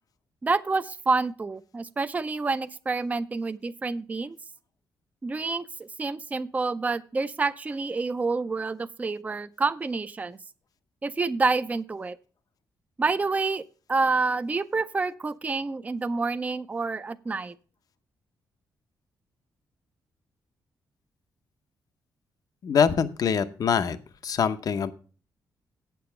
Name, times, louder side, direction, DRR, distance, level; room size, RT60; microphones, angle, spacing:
voice 1, 0.4-4.4 5.2-10.4 11.0-12.2 13.0-13.6 13.9-17.6, right 3 dB, 20° right, 12 dB, 0.4 m, -28 dB
voice 2, 22.6-24.0 24.2-24.9, left 7 dB, 60° left, 10 dB, 0.7 m, -24 dB
8.6 x 6.9 x 5.8 m, 0.38 s
cardioid pair, 105°, 7 cm